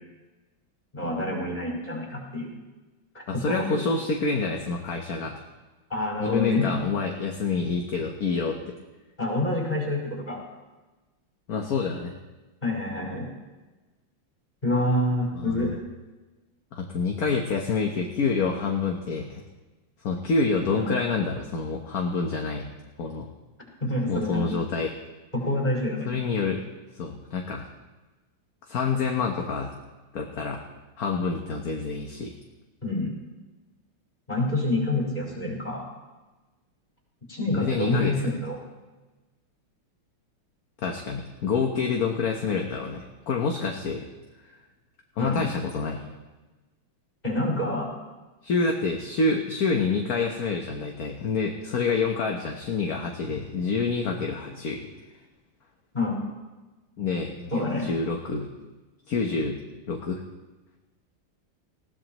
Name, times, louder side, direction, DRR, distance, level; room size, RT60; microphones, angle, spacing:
voice 1, 0.9-2.6 3.1-3.9 5.9-6.7 9.2-10.4 12.6-13.3 14.6-15.8 20.7-20.9 23.8-24.4 25.3-26.1 32.8-33.2 34.3-35.9 37.3-38.6 45.2-45.5 47.2-47.9 55.9-56.2 57.5-57.9, left 1 dB, 20° left, -3 dB, 5.2 m, -27 dB
voice 2, 3.3-5.4 6.2-8.6 11.5-12.1 15.3-15.8 16.7-19.4 20.0-22.7 23.0-23.3 24.1-25.0 26.0-26.6 26.9-27.7 28.7-29.7 30.1-30.6 31.0-32.3 37.5-38.1 40.8-44.1 44.4-44.5 45.2-46.1 48.4-54.9 57.0-58.5 59.1-59.6 59.9-60.2, left 4 dB, 50° left, 1 dB, 1.4 m, -27 dB
20.5 x 16.0 x 3.1 m, 1.2 s
omnidirectional pair, 2.2 m